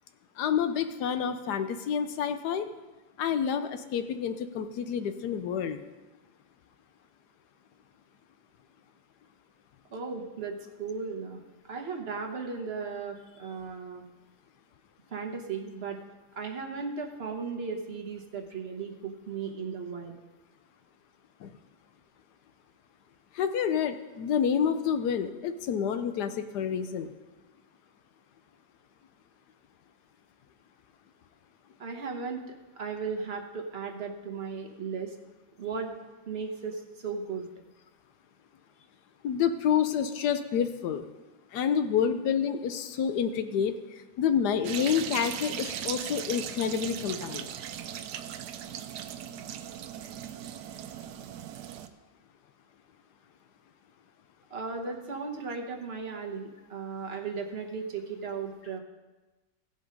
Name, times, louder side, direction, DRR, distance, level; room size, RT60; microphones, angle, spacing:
voice 1, 0.4-2.7 3.2-5.8 21.4-21.5 23.3-27.1 39.2-41.0 41.5-47.5, left 7 dB, 75° left, 9 dB, 1.2 m, -28 dB
voice 2, 9.9-14.0 15.1-16.0 16.3-20.1 31.8-32.4 32.7-35.2 35.6-35.9 36.3-37.5 54.5-58.8, right 5 dB, 40° right, 2 dB, 1.2 m, -36 dB
sound 1, 44.6-51.9, right 10 dB, 75° right, 1.1 m, -38 dB
16.0 x 5.4 x 5.2 m, 1.2 s
omnidirectional pair, 1.8 m